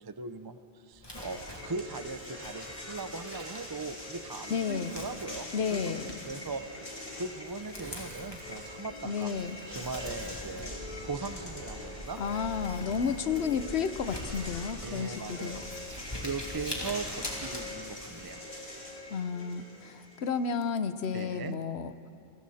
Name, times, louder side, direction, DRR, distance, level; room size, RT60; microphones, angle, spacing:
voice 1, 0.0-5.9 6.2-6.6 7.2-9.3 9.7-10.8 11.0-12.2 14.8-18.4 21.1-21.6, right 4 dB, 25° right, 10 dB, 0.5 m, -39 dB
Crumpling crinkling, 0.9-18.3, left 1 dB, 20° left, 3.0 m, -45 dB
sound 1, 1.1-20.7, left 1 dB, 35° left, 3.0 m, -43 dB
voice 2, 4.5-4.9 5.5-6.1 9.0-9.6 12.2-15.6 19.1-21.9, left 6 dB, 65° left, 12 dB, 1.1 m, -32 dB
sound 2, 9.7-14.7, left 1 dB, 55° right, 4.5 m, -46 dB
29.0 x 22.5 x 4.2 m, 2.4 s
omnidirectional pair, 1.2 m